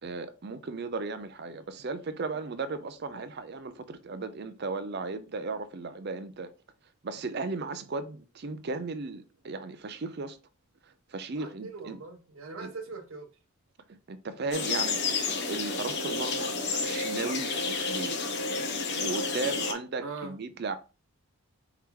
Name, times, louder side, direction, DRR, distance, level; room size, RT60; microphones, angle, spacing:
voice 1, 0.0-6.5 7.0-10.4 10.8-12.0 12.6-12.7 13.9-18.4 18.9-20.8, right 3 dB, 45° right, 0.5 m, -36 dB
voice 2, 11.3-13.3 20.0-20.3, right 4 dB, 65° right, 0.9 m, -41 dB
sound 1, 14.5-19.7, left 4 dB, 50° left, 0.8 m, -30 dB
4.7 x 3.0 x 3.6 m
head